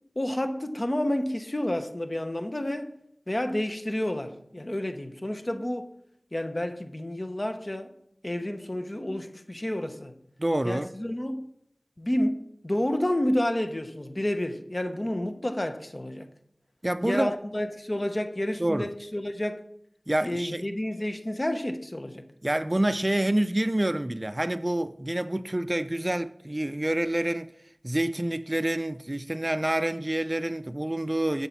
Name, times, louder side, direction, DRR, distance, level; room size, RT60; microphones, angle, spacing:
voice 1, 0.2-2.9 3.3-5.9 6.3-7.9 8.2-10.1 10.6-11.4 12.0-16.3 17.0-19.6 20.2-22.3, left 1 dB, 40° left, 0.9 m, -30 dB
voice 2, 10.4-10.9 16.8-17.3 18.6-18.9 20.1-20.7 22.4-27.5 27.8-31.5, right 1 dB, 30° right, 0.4 m, -27 dB
11.0 x 4.1 x 7.3 m
wide cardioid pair, 45°, 0 cm